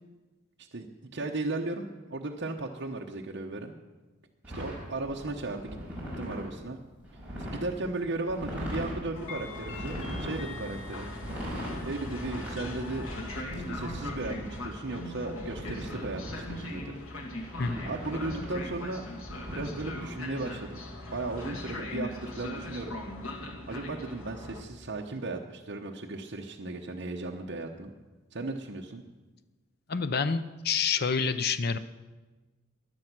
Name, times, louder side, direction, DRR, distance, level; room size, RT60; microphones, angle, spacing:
voice 1, 0.6-3.7 4.5-5.8 6.2-6.8 7.4-11.1 11.8-13.1 13.5-16.9 17.9-19.0 19.5-20.8 21.1-22.9 23.7-27.9 28.3-29.0, right 2 dB, 55° right, 0 dB, 0.9 m, -36 dB
sound 1, 4.4-6.5 7.0-7.7 8.3-9.0 9.6-10.4 11.1-11.8 12.2-14.6 15.4-16.8 17.4-18.6 19.3-19.6, equal, 5° right, 5.1 m, -39 dB
Train, 9.2-24.6, left 1 dB, 90° left, 2.2 m, -40 dB
voice 2, 29.9-31.8, left 5 dB, 50° left, 12 dB, 0.6 m, -28 dB
16.0 x 11.0 x 6.0 m, 1.2 s
head